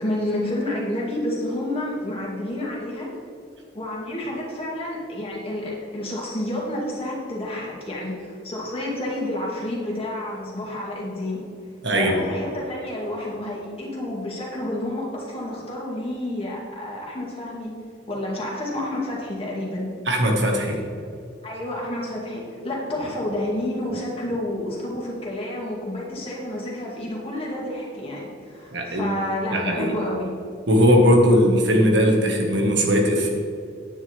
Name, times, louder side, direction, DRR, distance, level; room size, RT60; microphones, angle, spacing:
voice 1, 0.0-3.1 3.7-11.4 11.9-17.7 18.1-19.9 21.4-30.4, left 1 dB, 30° left, -4 dB, 2.4 m, -29 dB
voice 2, 11.8-12.2 20.0-20.8 28.7-29.1 29.5-29.9 30.7-33.3, equal, 65° right, 1 dB, 1.7 m, -19 dB
10.0 x 9.8 x 3.5 m, 2.5 s
head